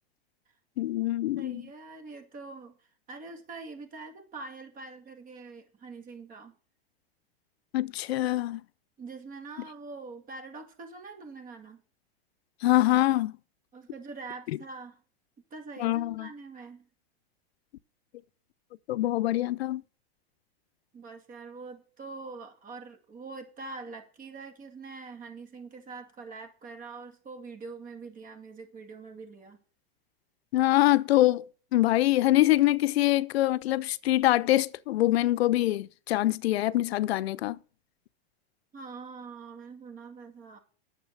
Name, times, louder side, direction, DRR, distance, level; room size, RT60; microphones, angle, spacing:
voice 1, 0.8-1.6 7.7-8.6 12.6-13.3 15.8-16.3 18.9-19.8 30.5-37.6, left 15 dB, 80° left, 0.6 m, -24 dB
voice 2, 1.4-6.5 9.0-11.8 13.7-15.0 15.5-16.9 20.9-29.6 38.7-40.6, right 4 dB, 25° right, 2.2 m, -44 dB
9.3 x 7.3 x 6.6 m
supercardioid pair, 130°, 31 cm